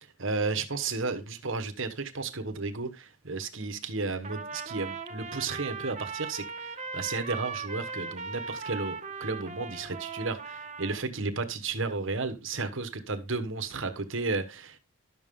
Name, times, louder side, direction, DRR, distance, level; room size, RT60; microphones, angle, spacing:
voice 1, 0.2-14.8, right 3 dB, 60° right, 1.2 m, -33 dB
Trumpet, 4.2-11.0, right 5 dB, 30° right, 1.1 m, -38 dB
12.0 x 6.9 x 3.7 m
head